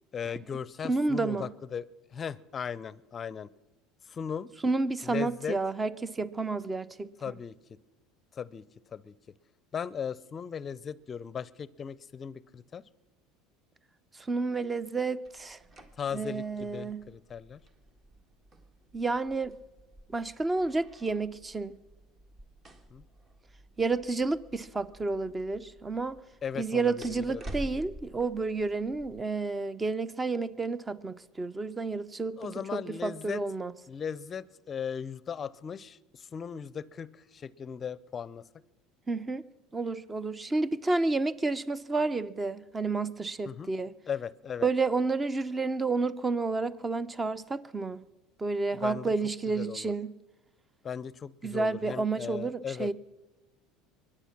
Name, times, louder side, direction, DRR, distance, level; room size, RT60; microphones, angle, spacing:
voice 1, 0.1-1.8 2.1-3.5 4.1-4.5 5.0-5.6 7.2-7.8 8.3-8.7 8.9-9.1 9.7-12.8 16.0-17.6 22.9-23.0 26.4-27.7 32.4-33.4 33.9-38.4 43.4-43.8 44.1-44.7 48.7-49.1 49.5-49.9 50.8-52.9, left 7 dB, 35° left, 0.5 m, -37 dB
voice 2, 0.8-1.5 4.6-7.4 14.3-15.6 16.1-17.0 18.9-19.5 20.1-21.8 23.8-26.2 26.6-33.7 39.1-39.4 39.7-43.9 44.6-48.0 48.4-50.1 51.4-52.9, right 3 dB, 20° right, 0.7 m, -30 dB
sound 1, 15.2-29.2, right 1 dB, 35° right, 1.8 m, -49 dB
23.0 x 10.0 x 6.0 m
supercardioid pair, 90°, 0 cm